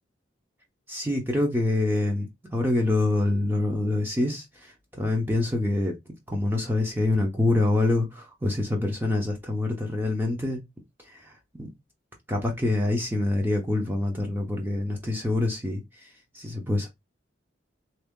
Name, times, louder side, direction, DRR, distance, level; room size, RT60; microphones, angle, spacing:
voice 1, 0.9-5.9 6.3-10.6 11.1-11.7 12.3-16.1 16.3-16.9, left 2 dB, 10° right, 0.8 m, -26 dB
3.5 x 2.8 x 3.6 m
head